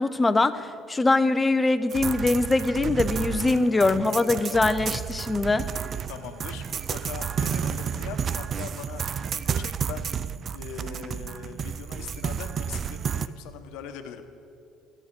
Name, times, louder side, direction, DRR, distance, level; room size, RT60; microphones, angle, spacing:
voice 1, 0.0-5.7, left 2 dB, 20° left, 12 dB, 0.6 m, -23 dB
sound 1, 1.9-13.3, right 7 dB, 45° right, 0.4 m, -31 dB
voice 2, 6.1-14.2, left 9 dB, 75° left, 8 dB, 0.9 m, -41 dB
12.5 x 8.8 x 6.0 m, 2.6 s
supercardioid pair, 85°, 0 cm